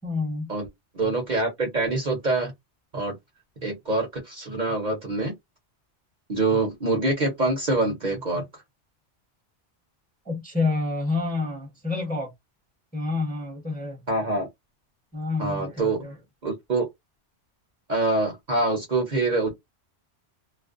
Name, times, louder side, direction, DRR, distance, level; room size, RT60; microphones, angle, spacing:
voice 1, 0.0-0.5 10.2-12.3 12.9-14.0 15.1-16.2, left 3 dB, 10° left, 0.8 m, -28 dB
voice 2, 0.9-2.5 2.9-3.1 3.6-5.3 6.3-8.4 14.1-14.5 15.4-16.1 16.4-16.9 17.9-19.5, right 2 dB, 45° right, 0.8 m, -25 dB
2.5 x 2.0 x 2.4 m
omnidirectional pair, 1.2 m